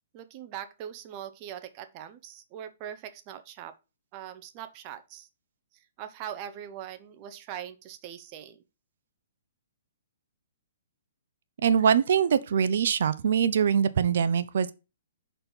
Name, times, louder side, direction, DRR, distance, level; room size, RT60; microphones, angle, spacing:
voice 1, 0.1-3.7 4.1-5.3 6.0-8.6, right 10 dB, 35° right, 0.9 m, -41 dB
voice 2, 11.6-14.7, right 7 dB, 65° right, 0.7 m, -23 dB
5.9 x 4.3 x 5.3 m
hypercardioid pair, 145°, 0 cm